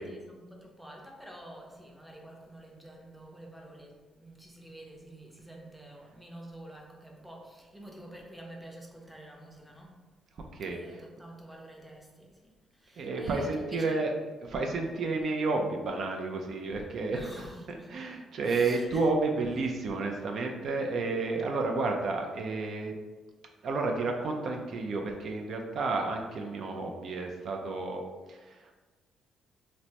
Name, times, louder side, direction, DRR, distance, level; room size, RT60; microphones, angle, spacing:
voice 1, 0.0-10.1 10.7-14.1 17.1-18.1 18.4-19.0, right 1 dB, ahead, -1 dB, 0.5 m, -48 dB
voice 2, 10.5-11.0 13.0-14.1 14.4-22.9 23.6-28.0 28.3-28.8, right 3 dB, 60° right, 2 dB, 0.3 m, -31 dB
3.1 x 2.0 x 2.8 m, 1.3 s
cardioid pair, 90°, 0 cm